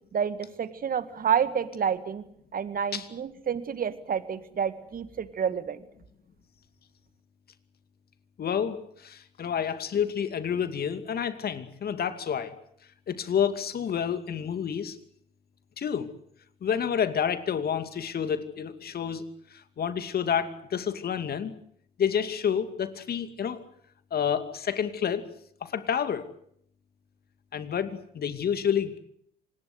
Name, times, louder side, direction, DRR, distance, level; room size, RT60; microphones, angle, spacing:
voice 1, 0.1-2.2 2.5-5.9, right 7 dB, 45° right, 13 dB, 2.0 m, -29 dB
voice 2, 8.4-12.5 13.1-15.0 15.8-16.1 16.6-19.2 19.5-21.5 22.0-23.6 24.1-25.2 25.6-26.3 27.5-29.0, left 8 dB, 50° left, 10 dB, 2.5 m, -29 dB
26.5 x 19.5 x 8.1 m, 0.68 s
hypercardioid pair, 55°, 20 cm